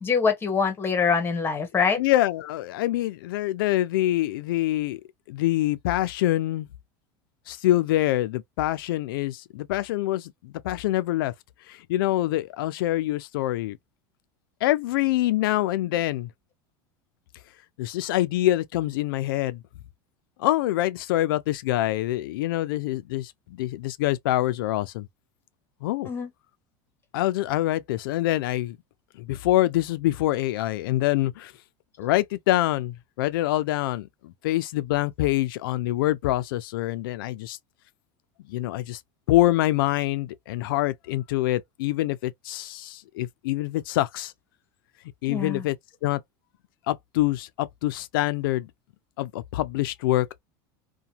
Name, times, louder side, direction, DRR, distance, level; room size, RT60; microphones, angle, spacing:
voice 1, 0.0-2.0 26.0-26.3 45.3-45.7, left 5 dB, 20° left, 1.1 m, -24 dB
voice 2, 2.0-5.0 5.3-6.7 7.5-11.3 11.7-13.8 14.6-16.3 17.8-19.6 20.4-25.1 25.8-26.1 27.1-28.8 29.2-31.5 32.0-37.6 38.5-39.0 39.3-44.3 45.2-45.8 46.0-46.2 46.9-48.7 49.2-50.4, left 15 dB, 85° left, 0.5 m, -25 dB
2.9 x 2.3 x 2.7 m
supercardioid pair, 130°, 11 cm